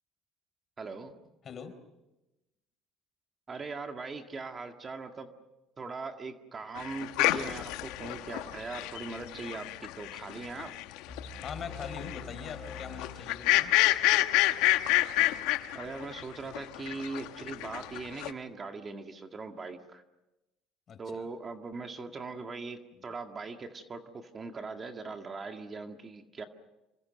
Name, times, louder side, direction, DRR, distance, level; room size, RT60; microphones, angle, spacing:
voice 1, 0.8-1.1 3.5-5.3 5.8-10.7 15.7-20.0 21.0-26.5, right 4 dB, 30° right, 5 dB, 1.9 m, -40 dB
sound 1, 6.8-16.2 16.5-18.3, left 16 dB, 85° left, 1.3 m, -28 dB
sound 2, 11.1-14.4, left 4 dB, 15° left, 4.1 m, -45 dB
voice 2, 11.4-13.7 20.9-21.3, left 6 dB, 40° left, 9 dB, 4.2 m, -42 dB
27.5 x 25.0 x 6.5 m, 0.97 s
cardioid pair, 115°, 0 cm